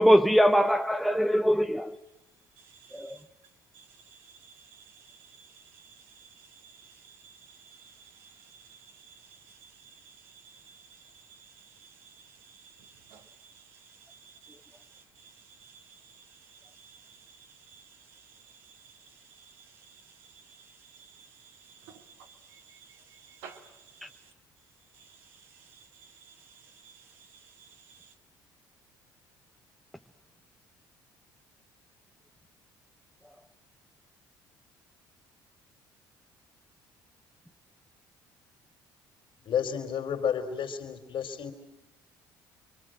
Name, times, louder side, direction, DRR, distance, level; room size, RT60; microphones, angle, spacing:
voice 1, 0.0-1.9 3.0-3.2, equal, ahead, 0.9 m, -22 dB
voice 2, 2.6-3.2 3.7-24.3 24.9-28.1, right 6 dB, 80° right, 2.4 m, -55 dB
voice 3, 39.5-41.5, left 8 dB, 55° left, 3.6 m, -31 dB
28.5 x 23.5 x 7.7 m
hypercardioid pair, 60°, 10 cm